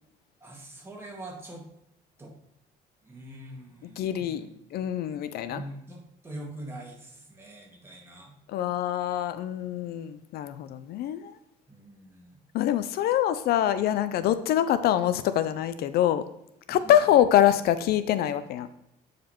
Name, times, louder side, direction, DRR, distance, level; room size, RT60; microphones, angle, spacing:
voice 1, 0.4-1.7 2.2-2.3 3.0-4.6 5.5-8.4 11.7-12.4 16.8-17.0, right 1 dB, 15° right, -1 dB, 1.9 m, -43 dB
voice 2, 3.8-5.6 8.5-11.4 12.5-16.3 16.7-18.7, left 11 dB, 65° left, 13 dB, 0.4 m, -25 dB
9.0 x 4.9 x 2.9 m, 0.79 s
cardioid pair, 110°, 17 cm